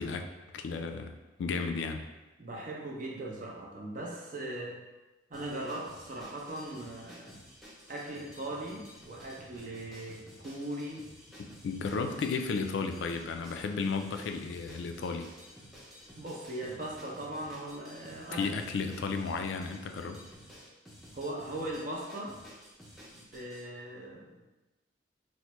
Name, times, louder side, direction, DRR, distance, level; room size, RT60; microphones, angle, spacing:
voice 1, 0.0-2.0 11.4-15.3 18.3-20.2, left 4 dB, 70° left, 6 dB, 0.3 m, -34 dB
voice 2, 2.4-4.8 5.3-7.4 7.9-11.1 16.2-18.5 18.8-18.9 21.1-22.4 23.1-24.4, right 1 dB, 45° right, -1 dB, 0.6 m, -39 dB
sound 1, 5.3-23.6, equal, ahead, 0.5 m, -52 dB
4.3 x 2.1 x 2.9 m, 1.1 s
head